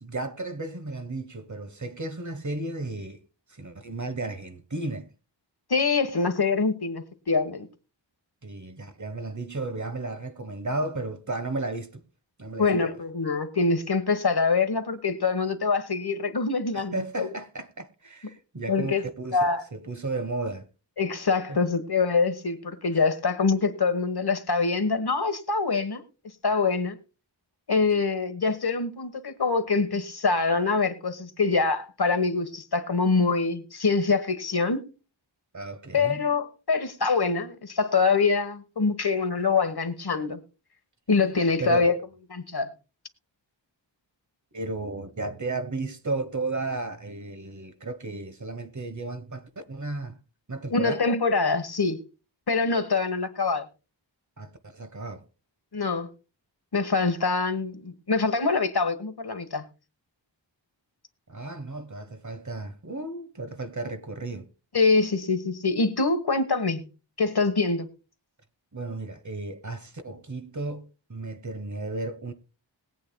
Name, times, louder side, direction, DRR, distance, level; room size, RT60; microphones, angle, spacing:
voice 1, 0.0-3.2 3.5-5.1 8.4-12.0 12.4-13.0 16.7-20.7 21.5-21.6 35.5-36.2 41.6-41.9 44.5-50.2 50.5-51.0 54.4-55.3 61.3-64.5 68.7-72.3, right 2 dB, 40° right, 1.1 m, -34 dB
voice 2, 5.7-7.7 12.6-17.3 18.7-19.0 19.3-19.6 21.0-26.0 26.4-27.0 27.7-34.8 35.9-40.4 41.1-41.9 42.3-42.7 50.7-52.0 52.5-53.6 55.7-56.1 56.7-59.6 64.7-66.9 67.2-67.9, left 4 dB, 55° left, 1.3 m, -24 dB
21.0 x 8.5 x 2.2 m
wide cardioid pair, 65°, 46 cm